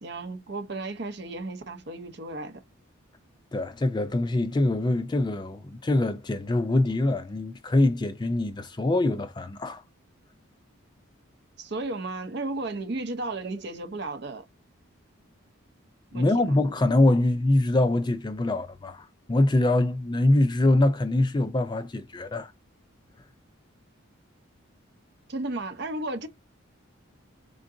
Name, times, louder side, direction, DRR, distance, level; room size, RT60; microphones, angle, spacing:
voice 1, 0.0-2.6 11.6-14.5 16.1-16.6 25.3-26.3, right 2 dB, 50° right, 0.7 m, -34 dB
voice 2, 3.5-9.8 16.1-22.5, left 2 dB, 20° left, 0.3 m, -24 dB
3.8 x 3.6 x 2.6 m
head